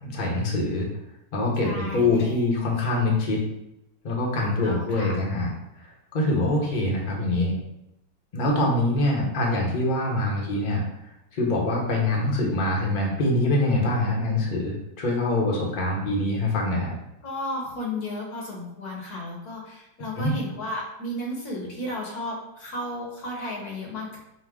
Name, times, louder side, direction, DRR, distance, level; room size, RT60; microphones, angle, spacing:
voice 1, 0.0-0.9 1.3-3.4 4.0-5.5 6.1-7.5 8.3-10.8 11.3-16.9 20.2-20.3, left 2 dB, 35° left, -2 dB, 0.8 m, -24 dB
voice 2, 1.6-2.4 4.6-5.2 17.2-24.2, left 1 dB, 60° left, -2 dB, 1.4 m, -33 dB
5.6 x 2.2 x 3.6 m, 0.84 s
omnidirectional pair, 2.0 m